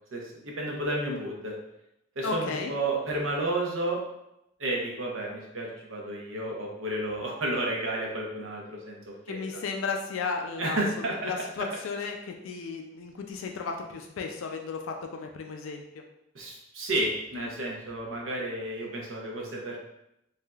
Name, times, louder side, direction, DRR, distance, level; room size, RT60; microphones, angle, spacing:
voice 1, 0.1-1.5 2.2-4.0 4.6-9.6 10.6-11.3 16.3-19.8, right 1 dB, 85° right, -1 dB, 0.8 m, -31 dB
voice 2, 2.2-2.7 9.3-16.0, left 4 dB, 85° left, 3 dB, 0.4 m, -34 dB
3.2 x 2.6 x 2.3 m, 0.83 s
head